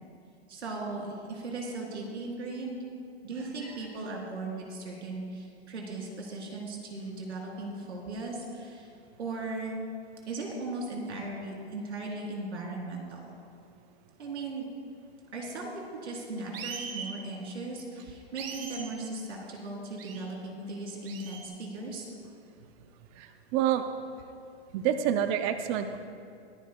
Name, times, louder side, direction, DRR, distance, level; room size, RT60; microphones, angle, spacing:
voice 1, 0.5-2.8 3.2-8.9 9.2-9.7 10.2-13.2 14.2-14.7 15.3-22.1, right 2 dB, 90° right, -1 dB, 3.2 m, -37 dB
sound 1, 16.5-17.1 18.4-18.8 20.0-20.2 21.0-21.5, right 6 dB, 60° right, 1.5 m, -39 dB
voice 2, 23.1-23.9 24.7-26.0, right 10 dB, 25° right, 9 dB, 0.4 m, -28 dB
22.5 x 11.0 x 2.2 m, 2.5 s
hypercardioid pair, 135°, 33 cm